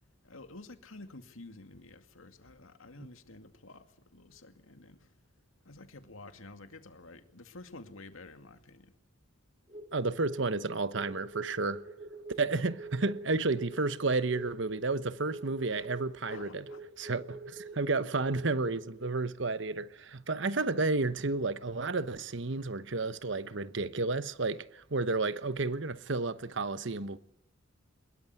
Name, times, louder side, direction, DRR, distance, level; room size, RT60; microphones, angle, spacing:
voice 1, 0.2-3.8 4.1-5.1 5.6-8.9 16.2-16.8, left 2 dB, 85° left, 2.4 m, -50 dB
sound 1, 9.7-19.1, right 2 dB, 30° right, 2.5 m, -46 dB
voice 2, 9.9-11.8 12.4-16.7 17.0-27.2, right 3 dB, 60° right, 1.0 m, -31 dB
23.0 x 21.5 x 9.7 m
head